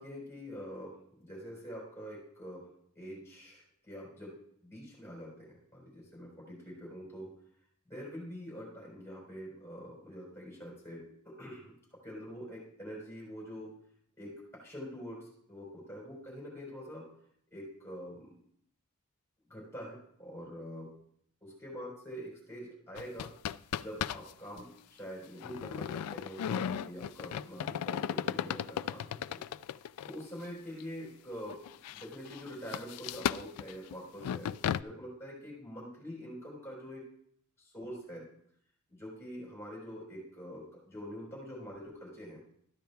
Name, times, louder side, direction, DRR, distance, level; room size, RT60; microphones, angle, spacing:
voice 1, 0.0-2.7 2.9-4.3 4.6-7.3 7.9-11.7 12.0-13.7 14.2-17.1 17.5-18.3 19.5-20.9 21.4-23.3 23.8-29.4 30.0-31.6 31.9-34.5 34.8-37.0 37.6-38.3 38.9-42.4, equal, 10° left, -5 dB, 4.3 m, -45 dB
sound 1, 23.0-24.3 24.6-24.7 25.4-30.2 30.8-30.9 31.5-34.8, left 9 dB, 90° left, 0.3 m, -35 dB
13.5 x 10.5 x 2.3 m, 0.67 s
head